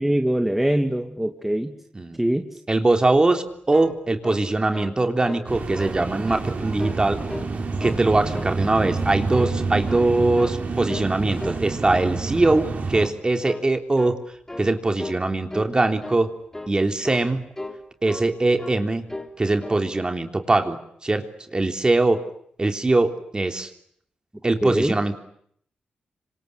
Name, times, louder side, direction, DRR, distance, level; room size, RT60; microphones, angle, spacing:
voice 1, 0.0-1.8 2.2-2.6 24.6-25.0, right 1 dB, 10° right, 5 dB, 2.4 m, -23 dB
voice 2, 2.7-7.2 7.8-14.2 14.6-16.3 16.7-17.4 18.0-19.0 19.4-20.8 21.0-22.2 22.6-23.7 24.4-25.2, right 2 dB, 30° right, 6 dB, 3.4 m, -22 dB
sound 1, 3.5-5.0 5.3-5.5 5.8-6.5 6.8-7.5 7.8-8.6 8.8-9.1 9.3-10.1 10.4-10.6 10.9-11.1 11.4-12.1 12.4-12.7 12.9-13.2 13.4-13.7 14.0-14.2 14.5-14.7 15.0-15.2 15.5-15.7 16.0-16.2 16.5-16.8 17.0-17.3 17.6-18.3 18.6-18.8 19.1-19.3 19.6-19.9, left 1 dB, 15° left, 3.6 m, -36 dB
sound 2, 5.5-13.1, right 4 dB, 55° right, 4.7 m, -28 dB
26.5 x 26.0 x 8.5 m, 0.68 s
cardioid pair, 65°, 3 cm